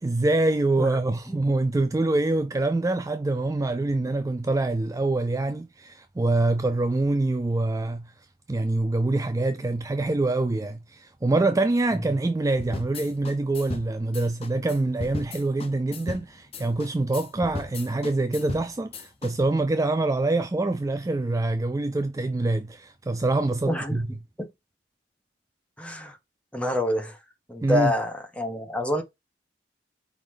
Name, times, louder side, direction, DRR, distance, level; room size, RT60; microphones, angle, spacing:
voice 1, 0.0-24.1 27.6-27.9, right 2 dB, 20° right, 0.4 m, -25 dB
sound 1, 12.6-19.3, left 2 dB, 35° left, 0.9 m, -36 dB
voice 2, 23.7-24.0 24.4-24.5 25.8-26.2 26.5-27.2 27.5-29.0, left 1 dB, 10° left, 1.3 m, -27 dB
5.0 x 3.8 x 5.0 m
head